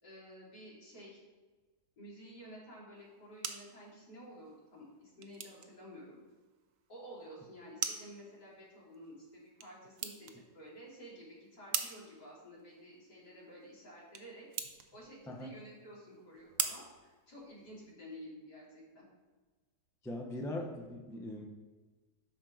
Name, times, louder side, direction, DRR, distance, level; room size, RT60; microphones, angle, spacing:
voice 1, 0.0-1.2 2.0-6.2 6.9-14.5 14.9-19.1, equal, 85° left, -7 dB, 3.6 m, -52 dB
sound 1, 3.0-17.9, right 7 dB, 60° right, 1.0 m, -44 dB
voice 2, 20.0-21.4, left 1 dB, 5° left, 1 dB, 0.3 m, -40 dB
12.0 x 4.5 x 3.9 m, 1.3 s
omnidirectional pair, 1.7 m